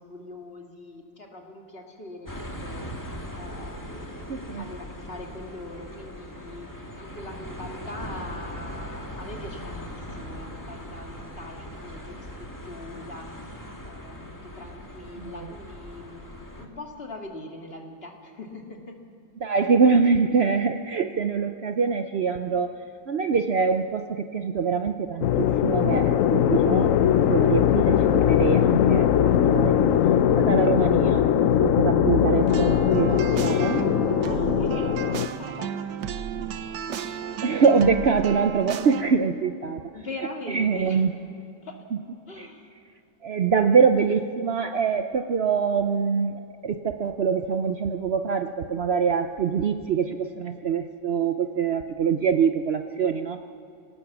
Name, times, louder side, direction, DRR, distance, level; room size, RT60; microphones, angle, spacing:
voice 1, 0.0-2.9 3.3-19.0 33.3-33.7 34.2-35.8 39.9-41.1 41.6-41.9 42.3-42.7, left 2 dB, 30° left, 1 dB, 2.3 m, -42 dB
sound 1, 2.3-16.7, equal, 10° left, 1.8 m, -39 dB
voice 2, 4.3-4.6 15.2-15.5 19.4-22.8 23.1-30.0 30.4-31.3 31.6-33.8 36.4-36.5 37.4-39.8 40.5-41.1 42.4-42.5 43.2-53.4, right 5 dB, 90° right, 7 dB, 0.5 m, -24 dB
sound 2, 25.2-35.3, left 10 dB, 70° left, 0.7 m, -20 dB
sound 3, 32.5-39.0, right 8 dB, 65° right, 1.4 m, -32 dB
26.5 x 18.0 x 7.3 m, 2.7 s
omnidirectional pair, 2.1 m